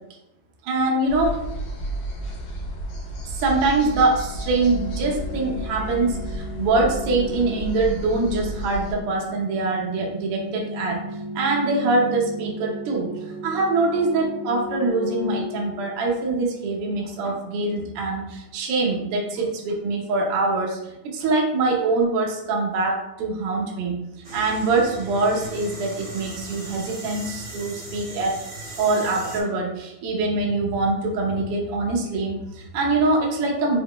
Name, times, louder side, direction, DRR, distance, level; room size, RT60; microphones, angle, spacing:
voice 1, 0.6-1.4 3.2-11.0 11.3-13.1 13.4-24.0 24.3-28.4 28.8-33.8, right 3 dB, 90° right, -1 dB, 1.2 m, -24 dB
sound 1, 1.1-8.9, right 1 dB, 75° left, 1.3 m, -32 dB
sound 2, 3.9-16.6, left 3 dB, 40° left, 1.1 m, -36 dB
sound 3, 24.2-29.4, right 1 dB, 70° right, 0.9 m, -37 dB
5.1 x 2.3 x 3.6 m, 0.91 s
omnidirectional pair, 3.6 m